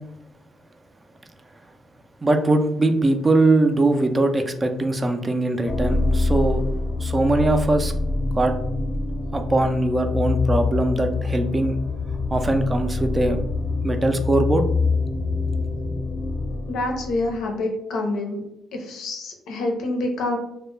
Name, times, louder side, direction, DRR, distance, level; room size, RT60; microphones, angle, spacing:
voice 1, 2.2-6.7 7.0-7.9 8.3-8.6 9.3-11.8 12.3-13.4 13.8-14.6, right 2 dB, 25° right, 6 dB, 0.3 m, -21 dB
sound 1, 5.7-17.5, left 3 dB, 30° left, 0.5 m, -25 dB
voice 2, 16.7-18.4 18.7-20.4, left 2 dB, 80° left, 2 dB, 0.5 m, -27 dB
2.2 x 2.1 x 3.1 m, 0.83 s
cardioid pair, 90°, 0 cm